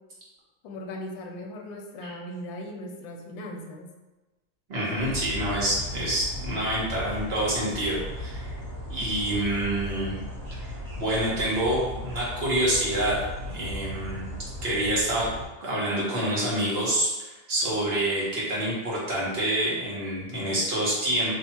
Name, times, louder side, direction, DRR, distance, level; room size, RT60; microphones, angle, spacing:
voice 1, 0.6-3.9, left 1 dB, 75° left, 1 dB, 1.3 m, -38 dB
voice 2, 4.7-8.5 8.9-10.2 10.6-14.3 14.6-15.3 15.6-21.4, right 1 dB, 35° right, -6 dB, 1.2 m, -27 dB
sound 1, 5.0-15.4, left 1 dB, 10° left, 1.1 m, -36 dB
3.4 x 2.7 x 4.3 m, 1.1 s
omnidirectional pair, 2.2 m